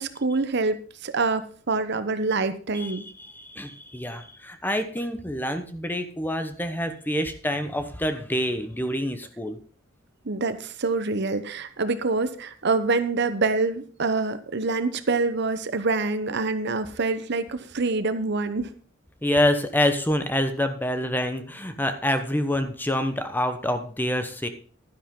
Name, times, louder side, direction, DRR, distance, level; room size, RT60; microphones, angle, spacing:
voice 1, 0.0-3.0 10.2-18.7, right 3 dB, 60° right, 11 dB, 0.9 m, -26 dB
voice 2, 2.7-9.6 19.2-24.5, left 1 dB, 10° left, 9 dB, 1.0 m, -27 dB
12.0 x 10.5 x 3.8 m, 0.41 s
head